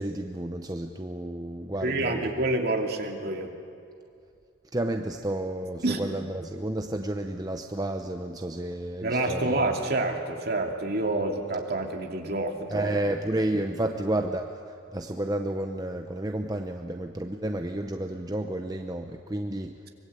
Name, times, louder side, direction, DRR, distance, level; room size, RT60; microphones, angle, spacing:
voice 1, 0.0-2.2 4.7-9.5 12.7-14.6 14.9-19.8, right 1 dB, 20° right, 4 dB, 0.8 m, -31 dB
voice 2, 1.8-3.5 5.8-6.0 9.0-12.9, right 2 dB, 50° right, 2 dB, 2.6 m, -28 dB
24.5 x 21.5 x 8.4 m, 2.4 s
head